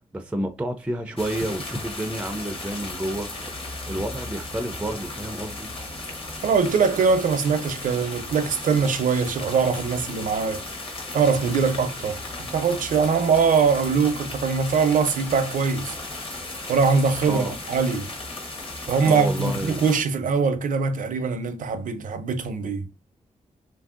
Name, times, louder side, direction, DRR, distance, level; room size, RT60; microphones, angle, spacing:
voice 1, 0.1-3.3 3.6-5.7 17.3-17.6 19.0-19.8, right 1 dB, 10° right, 0.4 m, -30 dB
sound 1, 1.2-20.0, left 2 dB, 40° left, 1.0 m, -35 dB
voice 2, 6.4-10.7 11.1-12.2 12.5-16.0 16.7-18.1 18.9-22.9, right 5 dB, 70° right, 0.5 m, -22 dB
3.1 x 2.6 x 2.4 m
cardioid pair, 95°, 14 cm